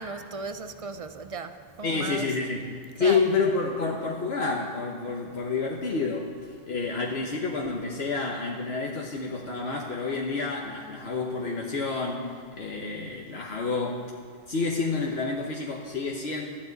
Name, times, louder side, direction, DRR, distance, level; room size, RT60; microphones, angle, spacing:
voice 1, 0.0-2.3 3.0-3.2, right 4 dB, 35° right, 9 dB, 0.7 m, -36 dB
voice 2, 1.8-6.3 6.7-14.0 14.5-16.5, left 4 dB, 75° left, -1 dB, 1.3 m, -29 dB
19.5 x 13.0 x 4.0 m, 2.1 s
omnidirectional pair, 1.1 m